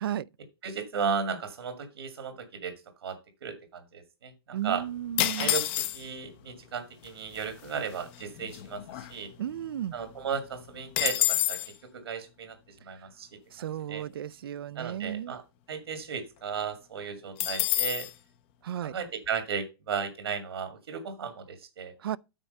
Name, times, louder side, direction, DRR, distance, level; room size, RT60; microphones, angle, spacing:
voice 1, 0.6-2.7 3.0-4.8 5.4-9.3 9.9-11.6 11.9-12.6 12.8-13.3 13.9-14.1 14.8-15.4 15.7-18.1 18.8-21.9, right 6 dB, 85° right, 2.1 m, -35 dB
voice 2, 4.5-5.5 9.4-9.9 13.5-15.4 18.6-18.9 22.0-22.2, right 11 dB, 65° right, 0.4 m, -34 dB
sound 1, 5.2-6.3 7.1-7.2 7.3-7.7 8.1-9.6 9.9-10.0 10.3-11.7 17.4-18.1, left 13 dB, 25° left, 0.6 m, -28 dB
8.9 x 4.6 x 5.3 m
hypercardioid pair, 170°, 13 cm